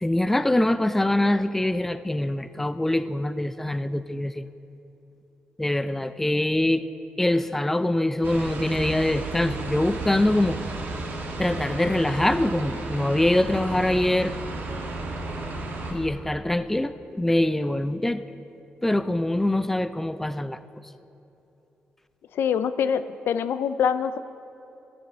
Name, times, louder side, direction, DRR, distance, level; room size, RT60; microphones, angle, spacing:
voice 1, 0.0-4.5 5.6-6.9 7.2-10.6 11.4-14.4 15.9-18.2 18.8-20.6, left 1 dB, 10° left, 13 dB, 0.3 m, -24 dB
sound 1, 8.2-15.9, right 2 dB, 75° right, 1.8 m, -33 dB
voice 2, 22.3-24.2, left 7 dB, 85° left, 13 dB, 0.4 m, -24 dB
13.5 x 8.2 x 4.3 m, 2.9 s
cardioid pair, 105°, 4 cm